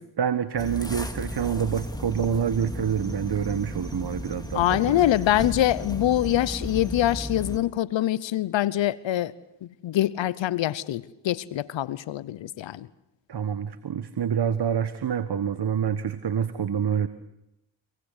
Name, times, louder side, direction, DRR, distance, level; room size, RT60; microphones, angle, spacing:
voice 1, 0.2-5.1 13.3-17.1, right 8 dB, 60° right, 12 dB, 1.4 m, -27 dB
sound 1, 0.6-7.6, left 1 dB, 10° left, 2.5 m, -35 dB
voice 2, 4.5-9.3 9.6-12.9, left 13 dB, 80° left, 19 dB, 0.8 m, -24 dB
26.0 x 19.5 x 8.3 m, 0.86 s
supercardioid pair, 45°, 45 cm